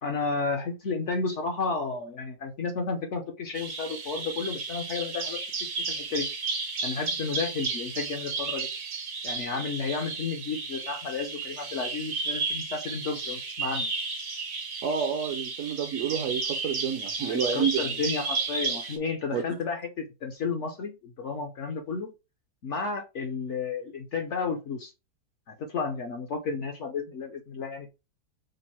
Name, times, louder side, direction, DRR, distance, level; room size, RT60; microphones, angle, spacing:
voice 1, 0.0-6.3 6.8-8.7 9.2-13.9 17.2-22.1 22.6-24.9 25.5-27.9, left 4 dB, 60° left, 4 dB, 0.8 m, -32 dB
Bird vocalization bird call bird song, 3.5-19.0, right 4 dB, 80° right, 1.7 m, -33 dB
voice 2, 14.8-18.0 19.3-19.6, right 7 dB, 65° right, 7 dB, 0.8 m, -29 dB
5.2 x 2.0 x 4.2 m, 0.27 s
omnidirectional pair, 1.8 m